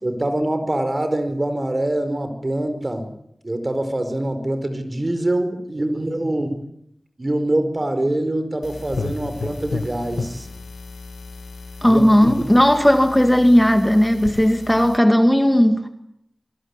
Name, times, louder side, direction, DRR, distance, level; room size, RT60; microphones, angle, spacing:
voice 1, 0.0-3.1 3.4-6.6 7.2-10.5 11.8-12.5, right 1 dB, 30° right, 4.8 m, -24 dB
sound 1, 8.6-15.0, left 4 dB, 85° left, 1.4 m, -33 dB
voice 2, 11.8-15.9, equal, 10° left, 2.1 m, -15 dB
27.0 x 20.5 x 9.8 m
wide cardioid pair, 95°, 0 cm